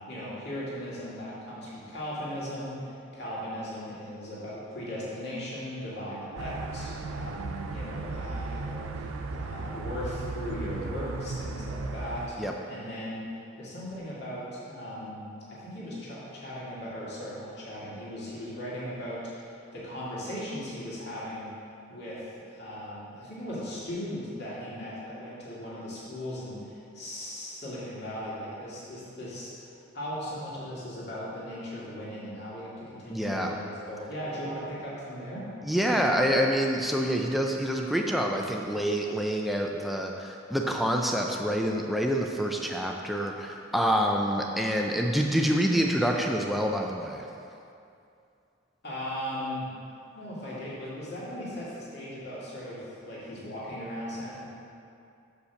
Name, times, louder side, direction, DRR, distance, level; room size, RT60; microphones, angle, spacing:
voice 1, 0.1-21.5 21.9-29.7 29.9-35.5 48.8-49.7 50.1-54.5, equal, 50° left, -8 dB, 2.1 m, -38 dB
sound 1, 6.4-12.3, right 3 dB, 80° right, 0.5 m, -36 dB
voice 2, 33.1-33.5 35.6-47.3, equal, ahead, 0 dB, 0.4 m, -27 dB
6.5 x 5.2 x 6.9 m, 2.5 s
head